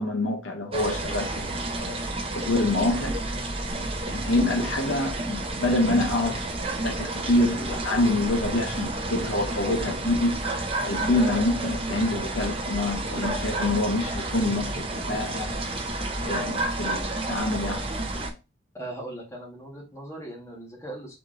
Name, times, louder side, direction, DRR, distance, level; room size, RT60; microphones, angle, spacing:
voice 1, 0.0-2.0 2.3-3.2 3.7-6.5 6.8-10.5 10.8-15.6 16.2-17.9, left 2 dB, 65° left, 0.8 m, -26 dB
sound 1, 0.7-18.3, right 2 dB, 25° right, 0.6 m, -31 dB
voice 2, 18.7-21.2, right 1 dB, 15° left, 1.6 m, -39 dB
4.0 x 3.5 x 3.7 m
head